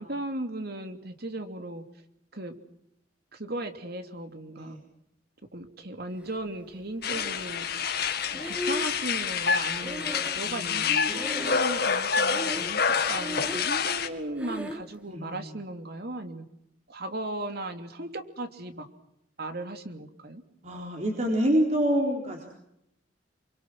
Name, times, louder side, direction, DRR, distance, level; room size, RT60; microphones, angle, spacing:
voice 1, 0.0-1.8 2.3-2.6 3.3-4.8 5.5-7.7 8.3-10.1 10.3-16.4 16.9-18.9 19.4-20.4, right 1 dB, 55° right, 7 dB, 3.0 m, -36 dB
sound 1, 7.0-14.1, left 6 dB, 55° left, 2.1 m, -27 dB
Breathing, 7.0-7.8 8.3-10.8 11.0-11.9 12.2-12.8 13.1-13.8 14.4-14.9, left 1 dB, 5° right, 1.8 m, -36 dB
voice 2, 10.4-10.9 15.1-15.5 20.6-22.5, equal, 35° right, 0 dB, 4.0 m, -27 dB
29.0 x 25.0 x 6.3 m, 0.79 s
head